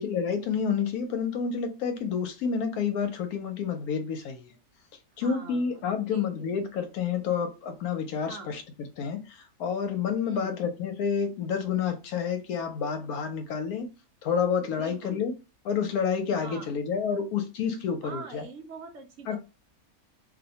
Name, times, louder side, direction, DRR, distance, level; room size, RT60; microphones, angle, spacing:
voice 1, 0.0-4.5 5.2-8.6 9.0-13.9 14.2-15.3 15.6-18.4 19.3-19.4, left 6 dB, 80° left, 1.1 m, -29 dB
voice 2, 5.2-6.6 8.2-8.6 10.2-10.6 14.7-15.3 16.4-16.9 18.0-19.4, right 3 dB, 70° right, 0.9 m, -43 dB
2.6 x 2.1 x 2.7 m
omnidirectional pair, 1.5 m